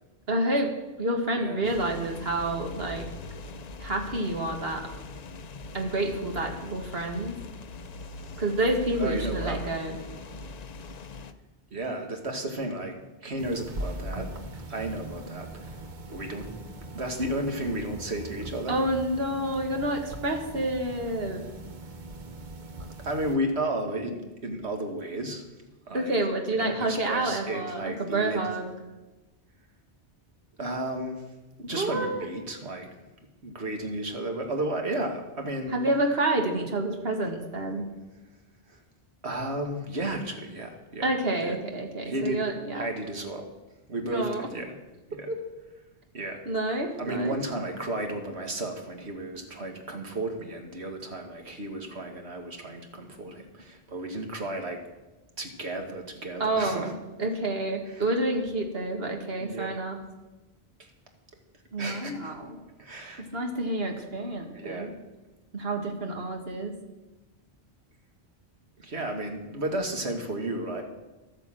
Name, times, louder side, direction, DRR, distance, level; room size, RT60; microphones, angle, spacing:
voice 1, 0.3-3.1 3.8-4.9 5.7-7.4 8.4-10.0 18.7-21.5 25.9-28.7 31.8-32.3 35.7-37.9 41.0-42.9 44.0-44.5 45.3-45.4 46.5-47.4 56.4-56.9 57.2-60.0 61.7-62.6 63.2-64.9 65.5-66.8, right 1 dB, 65° right, 3 dB, 2.0 m, -29 dB
sound 1, 1.6-11.3, left 2 dB, 45° left, 0.7 m, -41 dB
voice 2, 9.0-9.6 11.7-12.9 13.2-14.3 14.7-15.8 16.1-16.5 16.9-18.8 23.0-25.4 25.9-26.1 26.5-28.4 30.6-31.2 31.7-32.9 33.4-35.7 38.7-38.8 39.2-41.6 42.0-42.5 42.7-43.5 43.9-44.8 45.1-45.3 46.1-46.4 47.0-54.8 55.4-57.0 57.9-58.0 59.4-59.7 60.8-60.9 61.8-62.3 62.8-63.4 64.5-64.9 68.8-70.8, right 1 dB, 85° right, 3 dB, 2.0 m, -33 dB
sound 2, 13.4-23.4, right 1 dB, 50° right, 1.1 m, -40 dB
12.0 x 9.0 x 7.6 m, 1.1 s
omnidirectional pair, 1.1 m